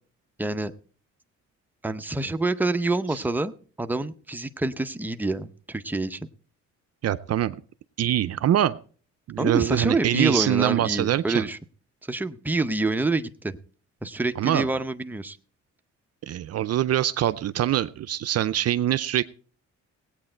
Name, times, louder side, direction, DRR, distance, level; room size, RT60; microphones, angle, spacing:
voice 1, 0.4-0.7 1.8-3.5 3.8-6.3 9.4-11.6 12.1-13.6 14.0-15.4, right 2 dB, 5° right, 9 dB, 0.7 m, -27 dB
voice 2, 7.0-7.6 8.0-8.8 9.3-11.5 14.4-14.7 16.2-19.2, right 12 dB, 55° right, 14 dB, 0.5 m, -24 dB
17.5 x 8.7 x 4.4 m, 0.43 s
cardioid pair, 90°, 30 cm